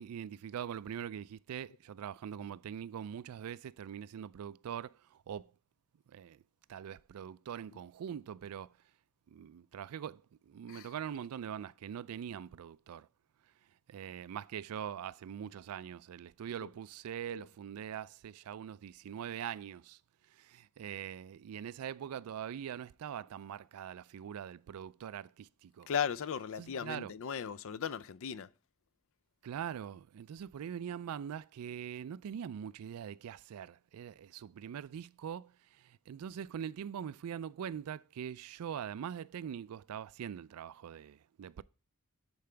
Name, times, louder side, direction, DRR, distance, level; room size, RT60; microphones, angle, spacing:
voice 1, 0.0-4.9 5.3-5.5 6.1-6.4 6.7-8.7 9.3-13.1 13.9-20.0 20.3-25.9 26.3-27.1 29.4-41.6, right 8 dB, 75° right, 0.3 m, -43 dB
voice 2, 25.9-28.5, left 7 dB, 65° left, 0.4 m, -37 dB
10.5 x 4.8 x 3.3 m
head